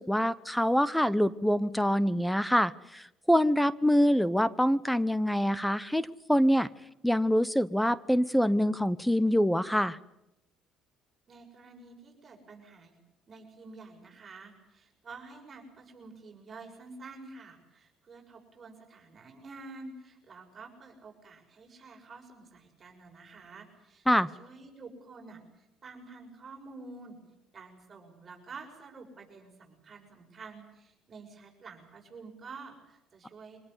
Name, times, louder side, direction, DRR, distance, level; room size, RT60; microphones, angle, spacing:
voice 1, 0.0-6.7 7.0-10.0 24.1-24.3, equal, 5° left, 18 dB, 0.8 m, -25 dB
voice 2, 11.3-13.0 13.3-27.2 27.5-33.6, right 3 dB, 35° right, 1 dB, 6.5 m, -49 dB
25.0 x 18.0 x 9.8 m, 0.89 s
cardioid pair, 95°, 0 cm